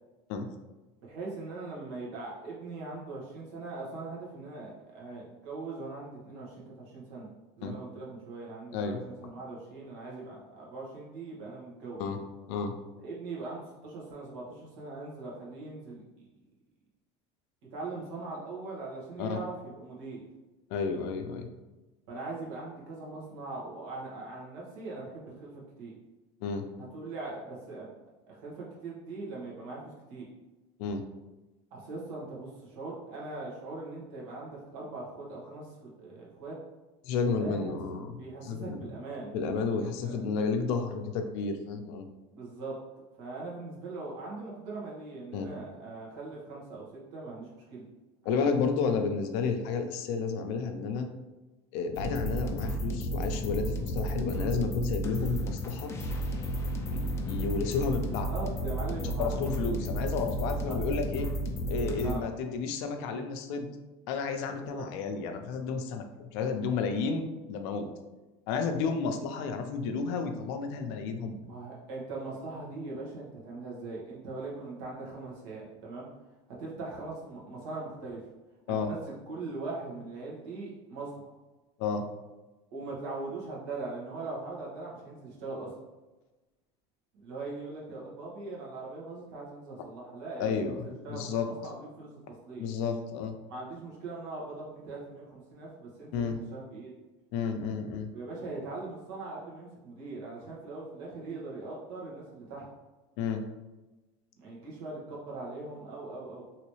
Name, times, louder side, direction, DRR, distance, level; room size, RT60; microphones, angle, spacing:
voice 1, 1.0-7.3 7.6-12.0 13.0-16.0 17.7-20.3 22.1-25.5 25.8-25.9 26.8-27.9 28.3-30.3 31.7-36.6 37.4-40.2 42.3-42.8 43.2-47.9 48.3-48.5 58.0-59.9 60.6-60.8 62.0-62.2 64.7-64.8 71.4-76.1 76.6-78.2 78.7-79.0 79.3-81.3 82.7-85.7 87.1-92.7 93.5-96.9 98.1-102.7 104.4-106.5, right 3 dB, 75° right, -4 dB, 1.4 m, -41 dB
voice 2, 20.7-21.5 26.4-26.7 30.8-31.0 37.0-38.9 39.3-42.1 45.3-45.5 48.3-51.1 51.7-55.9 56.9-58.3 59.2-61.3 61.7-63.7 64.1-67.9 68.5-71.4 78.7-78.9 81.8-82.0 90.4-91.5 92.6-93.4 96.1-96.4 97.3-98.1 103.2-103.4, left 5 dB, 70° left, 6 dB, 0.5 m, -31 dB
sound 1, 51.9-62.1, right 1 dB, 20° left, 0.5 m, -32 dB
3.0 x 2.8 x 3.1 m, 1.1 s
supercardioid pair, 120°, 15 cm